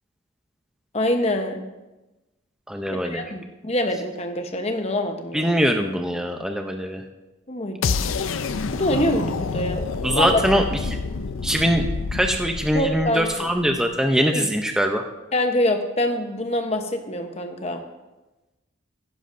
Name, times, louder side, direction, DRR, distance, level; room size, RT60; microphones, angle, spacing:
voice 1, 0.9-1.7 2.9-5.5 7.5-8.0 8.7-9.8 10.1-10.4 12.7-13.5 14.3-14.5 15.3-17.8, left 1 dB, 30° left, 5 dB, 0.9 m, -25 dB
voice 2, 2.7-3.2 5.3-7.0 10.0-11.0 11.4-11.8 12.1-15.0, equal, 5° right, 4 dB, 0.5 m, -22 dB
sound 1, 7.8-13.8, left 4 dB, 80° left, 0.5 m, -28 dB
15.5 x 11.0 x 2.6 m, 1.1 s
head